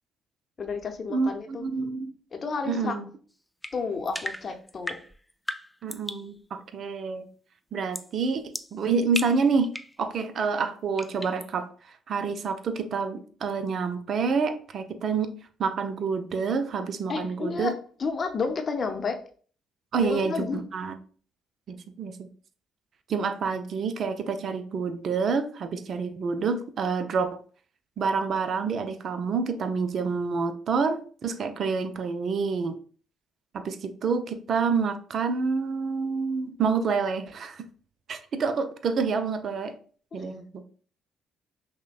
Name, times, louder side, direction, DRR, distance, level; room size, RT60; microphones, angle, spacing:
voice 1, 0.6-1.6 2.3-3.0 3.7-5.0 17.1-17.7 18.0-19.2 20.0-20.6 40.1-40.2, left 4 dB, 45° left, 5 dB, 0.7 m, -31 dB
voice 2, 1.1-2.1 2.7-3.1 5.8-7.3 7.7-8.4 8.7-9.7 10.0-11.7 12.1-15.3 15.6-17.7 19.9-21.0 21.7-22.3 23.1-27.4 28.0-32.8 33.5-37.7 38.1-39.7 40.1-40.6, right 5 dB, 55° right, 9 dB, 0.5 m, -28 dB
sound 1, 3.6-6.3 7.9-8.2 8.5-10.0 11.0-11.5, left 1 dB, 5° left, 0.3 m, -37 dB
5.7 x 2.1 x 2.3 m, 0.43 s
hypercardioid pair, 50°, 0 cm